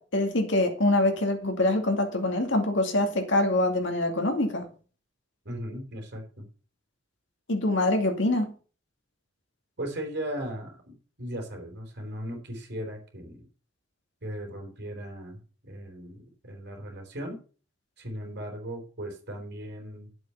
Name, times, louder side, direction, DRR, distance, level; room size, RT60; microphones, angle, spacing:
voice 1, 0.0-4.6 7.5-8.5, left 1 dB, 65° left, 3 dB, 2.4 m, -25 dB
voice 2, 5.5-6.4 9.8-13.5 14.2-17.4 18.0-20.1, right 1 dB, 55° right, 3 dB, 3.8 m, -37 dB
9.9 x 7.9 x 5.8 m, 0.39 s
head